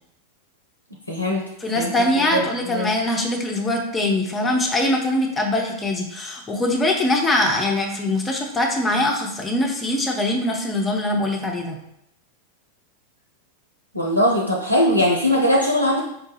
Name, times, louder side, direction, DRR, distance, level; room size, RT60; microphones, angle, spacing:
voice 1, 1.1-1.4 1.7-1.9 2.3-2.9 13.9-16.1, left 1 dB, 85° left, -2 dB, 0.5 m, -20 dB
voice 2, 1.6-11.8, left 1 dB, 15° left, 1 dB, 0.7 m, -22 dB
4.7 x 2.2 x 3.2 m, 0.78 s
figure-of-eight pair, 90°, 0 cm